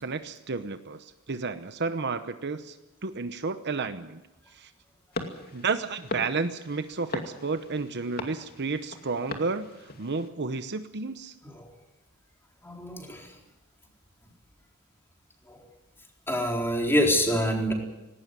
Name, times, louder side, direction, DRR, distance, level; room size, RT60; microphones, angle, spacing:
voice 1, 0.0-2.8 3.0-4.2 4.5-4.7 5.5-11.3, right 4 dB, 55° right, 10 dB, 0.9 m, -32 dB
sound 1, 5.1-10.3, left 2 dB, 45° left, 2.5 m, -39 dB
voice 2, 12.6-13.3 15.5-15.6 16.3-17.7, equal, 10° left, 1 dB, 4.2 m, -26 dB
18.5 x 18.0 x 9.7 m, 1.0 s
head